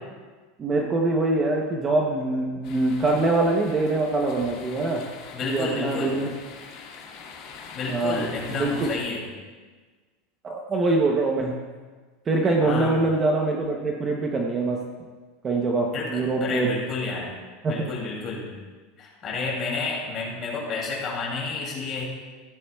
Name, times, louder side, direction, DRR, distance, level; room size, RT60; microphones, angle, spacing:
voice 1, 0.6-5.0 5.4-6.3 7.9-8.9 10.4-11.5 12.3-14.8 15.4-16.7 17.6-17.9, right 2 dB, 15° right, 1 dB, 0.8 m, -24 dB
sound 1, 2.6-9.0, left 5 dB, 40° left, 1.7 m, -43 dB
voice 2, 5.3-6.2 7.7-9.2 12.6-13.0 15.9-17.3 17.7-18.5 19.0-22.0, left 4 dB, 25° left, -3 dB, 2.6 m, -30 dB
15.0 x 10.5 x 2.3 m, 1.4 s
supercardioid pair, 175°, 0 cm